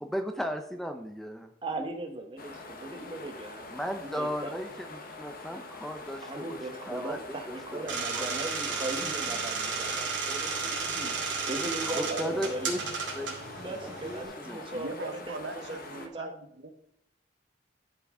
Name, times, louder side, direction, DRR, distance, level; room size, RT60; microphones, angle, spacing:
voice 1, 0.0-1.5 3.7-6.6 6.9-7.2 7.5-7.6 8.1-8.3 8.7-9.1 11.8-12.8 13.1-13.3 13.8-14.7, equal, ahead, 6 dB, 0.6 m, -36 dB
voice 2, 1.6-3.7 4.0-4.6 6.2-11.2 11.5-12.7 13.6-16.3, right 2 dB, 30° right, 4 dB, 1.2 m, -38 dB
sound 1, 2.4-16.1, left 2 dB, 55° left, 1.0 m, -45 dB
sound 2, 7.9-14.2, right 5 dB, 90° right, 2.3 m, -33 dB
voice 3, 12.1-12.8 14.7-16.7, right 2 dB, 70° right, 6 dB, 1.1 m, -39 dB
11.5 x 5.8 x 3.7 m, 0.70 s
head